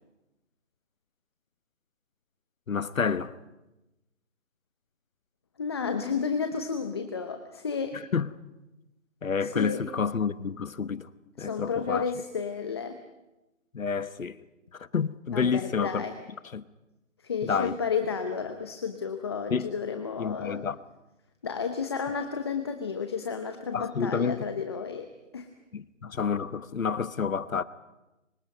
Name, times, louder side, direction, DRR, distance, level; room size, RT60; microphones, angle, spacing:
voice 1, 2.7-3.3 8.1-8.3 9.2-11.1 11.4-12.1 13.7-14.4 14.7-16.0 16.5-16.6 17.4-17.8 19.5-19.7 20.2-20.8 23.7-24.4 25.7-27.6, left 6 dB, 80° left, 1.2 m, -29 dB
voice 2, 5.6-8.0 9.4-9.8 11.4-13.0 15.3-16.2 17.2-20.6 21.4-25.5, left 5 dB, 20° left, 0.8 m, -32 dB
30.0 x 25.0 x 5.4 m
hypercardioid pair, 160°, 39 cm